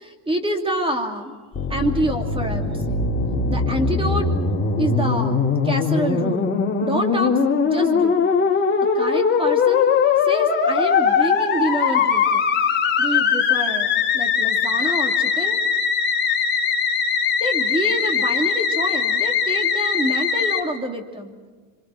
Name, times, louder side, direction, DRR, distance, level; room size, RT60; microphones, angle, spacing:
voice 1, 0.0-1.3 1.7-3.0 3.5-4.3 4.8-6.5 6.8-8.2 8.8-9.9 10.3-12.4 13.0-13.9 14.1-15.6 17.4-21.3, right 1 dB, 10° right, 5 dB, 2.7 m, -27 dB
Musical instrument, 1.5-20.6, left 6 dB, 25° left, 3.7 m, -21 dB
27.5 x 25.0 x 6.4 m, 1.4 s
cardioid pair, 150°, 45 cm